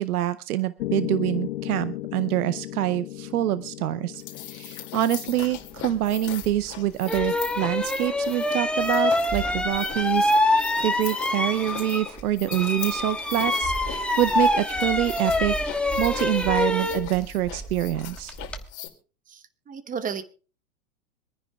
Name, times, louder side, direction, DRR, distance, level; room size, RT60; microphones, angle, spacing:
voice 1, 0.0-18.3, right 13 dB, 80° right, 14 dB, 0.7 m, -26 dB
Piano, 0.8-8.9, left 15 dB, 70° left, 1.0 m, -36 dB
sound 1, 4.1-18.9, left 13 dB, 40° left, 2.4 m, -40 dB
sound 2, 6.4-6.5 7.0-12.2 12.5-18.6, left 1 dB, ahead, 1.3 m, -25 dB
voice 2, 19.3-20.2, right 6 dB, 20° right, 12 dB, 1.0 m, -33 dB
26.0 x 9.9 x 2.3 m, 0.37 s
hypercardioid pair, 110°, 44 cm